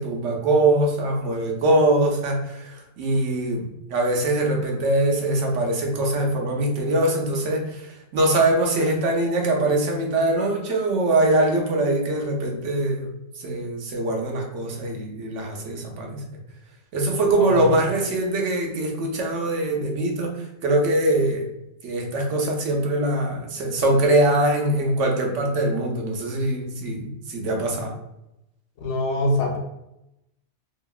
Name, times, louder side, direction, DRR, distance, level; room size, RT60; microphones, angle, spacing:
voice 1, 0.0-13.1 13.4-16.2 16.9-21.5 21.8-27.9, right 1 dB, 85° right, 1 dB, 1.0 m, -23 dB
voice 2, 28.8-29.6, left 1 dB, 75° left, 1 dB, 0.9 m, -23 dB
2.8 x 2.7 x 2.3 m, 0.85 s
omnidirectional pair, 1.2 m